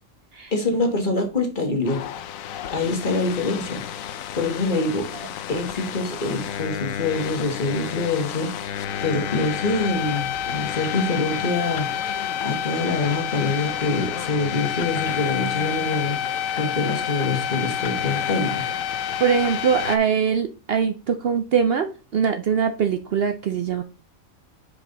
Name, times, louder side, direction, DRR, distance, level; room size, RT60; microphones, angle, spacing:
voice 1, 0.5-2.0 2.7-5.1 5.5-18.6, left 3 dB, 40° left, 3 dB, 1.6 m, -25 dB
sound 1, 1.9-20.0, left 9 dB, 90° left, 1.0 m, -29 dB
voice 2, 19.2-23.8, right 7 dB, 60° right, 7 dB, 0.7 m, -22 dB
5.5 x 5.1 x 3.8 m, 0.33 s
omnidirectional pair, 1.4 m